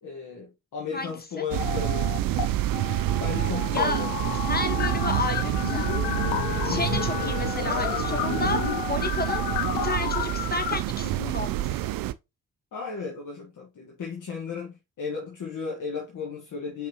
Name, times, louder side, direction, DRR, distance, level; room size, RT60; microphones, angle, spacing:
voice 1, 0.0-2.1 3.2-4.2 6.6-7.3 12.7-16.9, left 5 dB, 55° left, 1.4 m, -35 dB
sound 1, 1.5-2.5 2.7-10.7, left 11 dB, 85° left, 0.6 m, -31 dB
sound 2, 1.5-12.1, right 13 dB, 65° right, 0.5 m, -28 dB
voice 2, 3.7-4.0 4.5-5.9 6.5-8.6 8.9-9.5 9.8-11.9, left 3 dB, 25° left, 1.3 m, -31 dB
5.3 x 3.5 x 2.8 m
hypercardioid pair, 45°, 38 cm